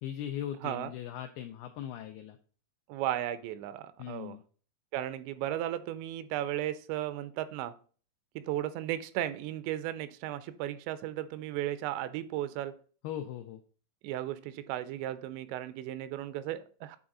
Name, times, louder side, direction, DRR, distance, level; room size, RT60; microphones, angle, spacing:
voice 1, 0.0-2.4 4.0-4.4 13.0-13.6, left 10 dB, 90° left, 6 dB, 2.2 m, -39 dB
voice 2, 0.6-0.9 2.9-4.4 4.9-7.7 8.4-12.8 14.0-17.0, right 13 dB, 85° right, 13 dB, 2.8 m, -35 dB
8.7 x 4.0 x 3.7 m, 0.41 s
omnidirectional pair, 5.1 m